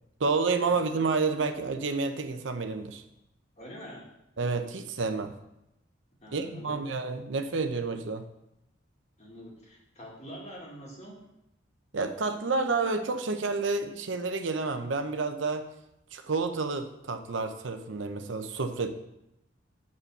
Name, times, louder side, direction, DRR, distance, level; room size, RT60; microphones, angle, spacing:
voice 1, 0.2-3.0 4.4-5.3 6.3-8.2 11.9-15.7 16.1-18.9, right 4 dB, 85° right, 8 dB, 0.7 m, -29 dB
voice 2, 3.6-4.1 6.2-6.9 9.2-11.2, equal, 40° left, -3 dB, 2.1 m, -45 dB
7.0 x 5.1 x 6.5 m, 0.86 s
head